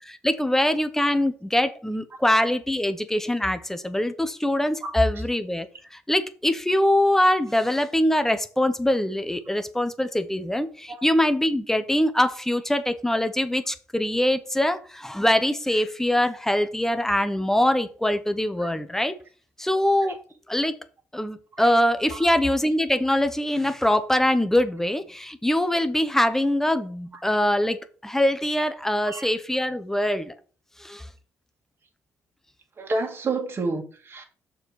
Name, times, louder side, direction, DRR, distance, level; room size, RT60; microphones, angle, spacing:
voice 1, 0.0-19.1 19.6-20.2 20.5-20.8 21.1-27.8 28.0-30.3 30.8-31.1, left 1 dB, 5° left, 11 dB, 0.9 m, -23 dB
voice 2, 32.8-34.2, right 3 dB, 40° right, 2 dB, 2.1 m, -28 dB
6.5 x 4.7 x 4.8 m, 0.39 s
cardioid pair, 85°, 6 cm